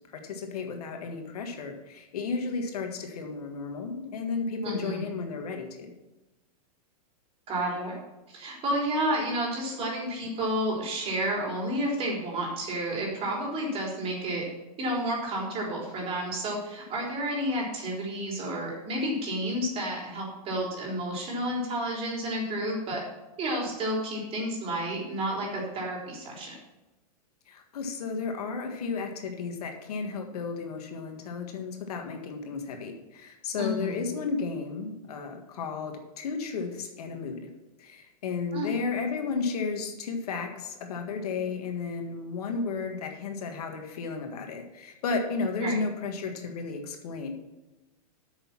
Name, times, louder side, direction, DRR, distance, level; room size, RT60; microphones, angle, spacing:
voice 1, 0.1-5.9 27.5-37.5 37.8-47.3, left 4 dB, 75° left, 4 dB, 1.7 m, -33 dB
voice 2, 4.6-5.0 7.5-7.9 8.3-14.4 14.8-23.0 23.4-26.6 33.6-34.0 38.5-38.8 45.6-45.8, right 1 dB, 30° right, -2 dB, 3.8 m, -31 dB
8.8 x 6.5 x 5.9 m, 1.0 s
hypercardioid pair, 130°, 20 cm